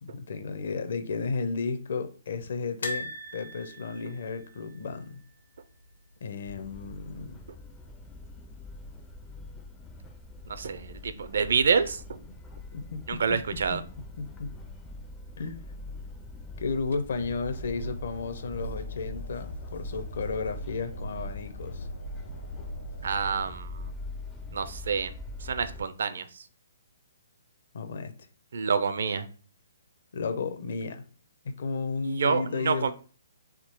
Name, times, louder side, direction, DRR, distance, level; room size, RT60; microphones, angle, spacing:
voice 1, 0.0-5.2 6.2-7.4 12.7-13.2 13.7-13.8 14.2-14.5 15.4-15.6 16.6-21.9 27.7-28.1 30.1-31.0 31.4-32.9, left 4 dB, 55° left, 0.6 m, -33 dB
sound 1, 2.8-5.9 6.1-6.3 6.6-6.7 7.9-8.5 9.0-9.1, left 1 dB, 90° left, 1.4 m, -40 dB
sound 2, 6.5-25.8, left 2 dB, 10° left, 0.4 m, -44 dB
voice 2, 10.5-12.2 13.1-13.8 23.0-23.9 24.5-25.1 25.4-26.5 28.5-29.3 32.0-32.9, right 5 dB, 65° right, 0.5 m, -28 dB
Train, 17.1-23.5, right 1 dB, 70° left, 1.2 m, -40 dB
3.7 x 2.7 x 4.4 m
hypercardioid pair, 170°, 0 cm